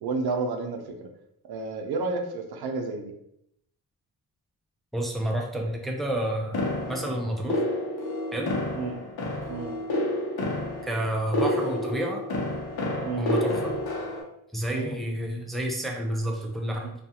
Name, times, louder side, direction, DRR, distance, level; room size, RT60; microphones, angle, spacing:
voice 1, 0.0-1.1 1.5-3.1 8.7-9.0 9.5-9.7 13.0-13.3 14.7-15.0 16.8-16.9, right 3 dB, 80° right, 5 dB, 0.5 m, -31 dB
voice 2, 4.9-7.6 8.3-8.5 10.8-12.2 13.2-13.7 14.5-16.9, right 1 dB, ahead, 0 dB, 0.4 m, -30 dB
sound 1, 6.5-14.2, left 1 dB, 75° left, 0.8 m, -29 dB
2.3 x 2.3 x 2.7 m, 0.78 s
cardioid pair, 85°, 37 cm